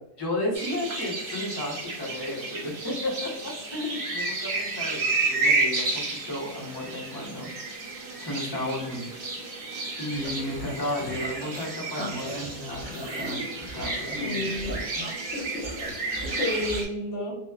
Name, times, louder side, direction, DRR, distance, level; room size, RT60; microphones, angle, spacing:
voice 1, 0.2-7.8 8.2-9.2 10.0-14.5, left 1 dB, 25° left, -5 dB, 0.8 m, -33 dB
sound 1, 0.5-16.8, right 3 dB, 50° right, 0.8 m, -31 dB
sound 2, 10.1-11.7 11.9-16.8, equal, 10° right, 0.7 m, -38 dB
voice 2, 14.1-14.8 15.3-15.9 16.3-17.4, left 2 dB, 75° left, 0 dB, 0.8 m, -31 dB
2.9 x 2.1 x 2.3 m, 0.84 s
omnidirectional pair, 1.1 m